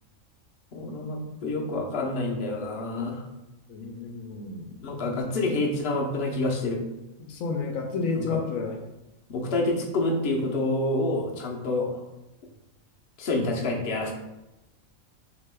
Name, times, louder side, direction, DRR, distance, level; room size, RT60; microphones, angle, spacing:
voice 1, 0.7-3.3 4.8-6.8 8.2-8.4 9.3-12.0 13.2-14.1, left 2 dB, 55° left, -1 dB, 0.9 m, -28 dB
voice 2, 3.7-5.0 7.2-8.8, left 4 dB, 80° left, 2 dB, 1.0 m, -31 dB
6.4 x 2.8 x 2.2 m, 0.96 s
omnidirectional pair, 1.4 m